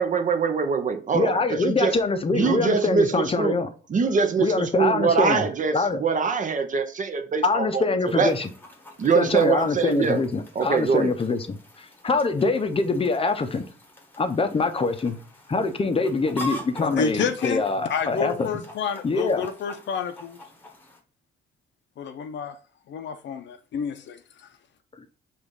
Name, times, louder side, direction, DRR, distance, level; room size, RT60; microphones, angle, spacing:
voice 1, 0.0-1.9 2.3-3.5 3.9-7.8 8.1-8.3 9.0-10.2 10.5-11.1, right 5 dB, 40° right, 0.8 m, -23 dB
voice 2, 1.1-3.7 4.4-5.5 5.7-6.0 7.4-8.5 9.1-13.7 14.2-15.2 15.5-18.5 19.0-19.5 25.0-25.1, left 3 dB, 30° left, 0.7 m, -24 dB
Chicken rooster, 8.1-21.0, left 1 dB, 10° left, 1.1 m, -43 dB
voice 3, 16.8-17.6 17.9-20.4 22.0-22.5 22.9-24.2, left 6 dB, 65° left, 0.6 m, -29 dB
5.0 x 2.5 x 3.9 m
cardioid pair, 90°, 20 cm